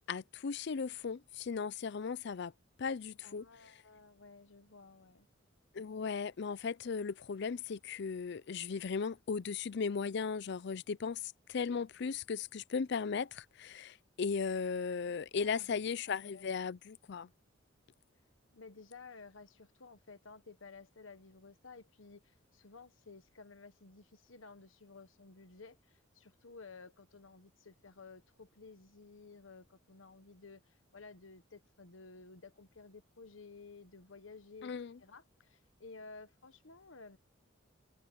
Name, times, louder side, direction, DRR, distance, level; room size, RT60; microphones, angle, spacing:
voice 1, 0.1-2.5 2.8-3.4 5.7-17.3 34.6-35.0, left 5 dB, 60° left, 0.5 m, -37 dB
voice 2, 3.2-5.3 15.4-16.5 18.5-34.7 35.0-37.2, left 4 dB, 80° left, 1.2 m, -54 dB
head